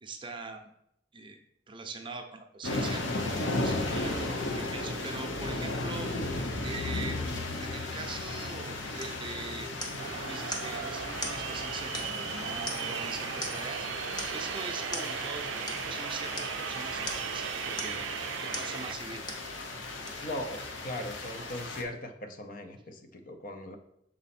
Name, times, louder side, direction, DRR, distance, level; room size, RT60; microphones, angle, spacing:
voice 1, 0.0-0.7 1.1-1.4 1.7-3.0 3.5-6.1 6.6-9.7 10.3-13.9 14.3-18.0 18.4-19.2, right 3 dB, 25° right, 4 dB, 0.6 m, -42 dB
sound 1, 2.6-21.8, left 2 dB, 90° left, 0.9 m, -36 dB
sound 2, 9.0-9.2 9.8-10.1 10.5-10.7 11.2-11.4 11.9-12.3 12.7-13.0 13.4-13.7 14.2-14.4 14.9-15.1 15.7-15.8 16.4-16.6 17.1-17.3 17.8-18.1 18.5-18.7 19.3-19.5 20.1-20.2, left 1 dB, 20° left, 1.0 m, -39 dB
sound 3, 10.0-18.9, right 9 dB, 85° right, 0.3 m, -37 dB
voice 2, 20.2-23.8, left 1 dB, 50° left, 6 dB, 0.6 m, -39 dB
6.2 x 4.1 x 4.2 m, 0.75 s
head